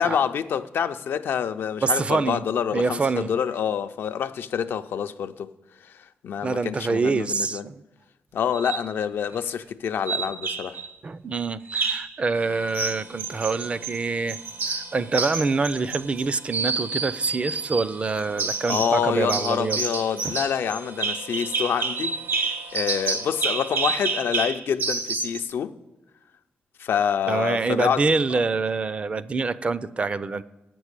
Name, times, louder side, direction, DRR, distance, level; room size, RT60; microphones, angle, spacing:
voice 1, 0.0-5.5 5.8-7.7 8.3-10.8 18.7-25.7 26.8-28.0, left 8 dB, 80° left, 0.5 m, -27 dB
voice 2, 1.8-2.4 2.7-3.3 6.4-7.8 11.0-14.4 14.7-19.8 20.2-20.3 27.3-30.4, right 4 dB, 30° right, 0.4 m, -25 dB
sound 1, 8.5-8.9 10.1-10.9 11.7-12.1 12.7-14.0 14.3-16.2 16.5-17.9 18.4-19.0 19.3-25.4, right 4 dB, 70° right, 1.0 m, -28 dB
sound 2, 12.3-24.2, right 4 dB, 85° right, 1.3 m, -46 dB
8.5 x 6.1 x 8.1 m
wide cardioid pair, 135°, 4 cm